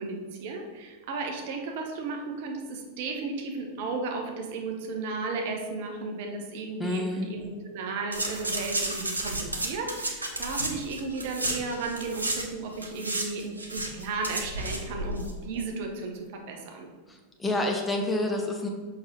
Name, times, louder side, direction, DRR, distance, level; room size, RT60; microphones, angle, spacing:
voice 1, 0.0-16.9, right 3 dB, 50° right, 3 dB, 1.0 m, -34 dB
voice 2, 6.8-7.3 17.1-18.7, left 1 dB, 10° left, 2 dB, 0.7 m, -28 dB
sound 1, 8.1-12.5 12.7-15.3 15.6-15.7, right 1 dB, 80° right, 0.8 m, -32 dB
6.5 x 5.4 x 3.1 m, 1.4 s
figure-of-eight pair, 90°, 0 cm